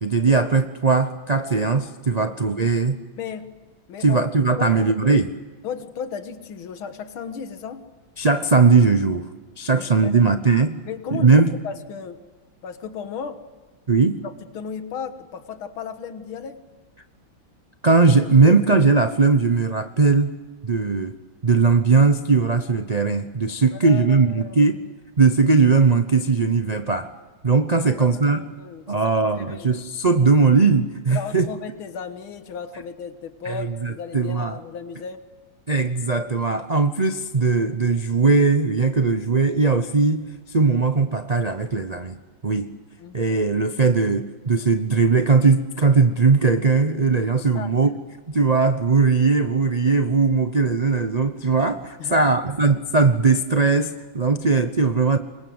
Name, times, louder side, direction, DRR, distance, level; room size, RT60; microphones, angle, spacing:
voice 1, 0.0-3.0 4.0-5.3 8.2-9.3 9.6-10.8 11.1-11.5 13.9-14.2 17.8-20.3 20.6-21.1 21.4-24.8 25.2-27.1 27.4-28.4 28.9-31.5 33.4-34.6 35.7-40.2 40.5-42.2 42.4-42.7 43.1-47.9 48.3-55.2, right 4 dB, 65° right, 8 dB, 0.4 m, -19 dB
voice 2, 3.2-3.6 3.9-4.3 4.6-4.8 5.6-7.9 9.7-10.2 10.9-11.4 11.6-12.2 12.6-13.4 14.2-16.6 23.7-24.6 27.8-29.7 31.1-35.2 43.0-43.1 47.4-47.9 52.0-52.3, left 6 dB, 80° left, 9 dB, 2.3 m, -35 dB
26.5 x 22.5 x 7.9 m, 1.3 s
omnidirectional pair, 2.3 m